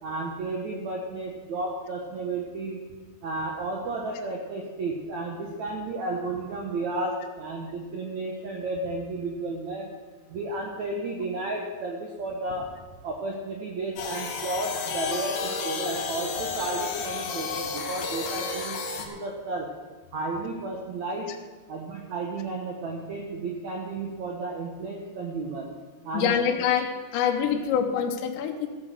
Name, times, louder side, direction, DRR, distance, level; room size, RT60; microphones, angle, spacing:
voice 1, 0.0-2.8 3.2-9.9 10.3-12.7 13.0-18.8 19.1-19.7 20.1-21.3 21.7-25.7 26.0-26.3, right 3 dB, 75° right, 0 dB, 1.6 m, -32 dB
sound 1, 14.0-19.1, left 5 dB, 65° left, 1.8 m, -32 dB
voice 2, 26.1-28.7, left 8 dB, 80° left, 3 dB, 3.2 m, -25 dB
14.5 x 8.4 x 6.3 m, 1.4 s
omnidirectional pair, 5.1 m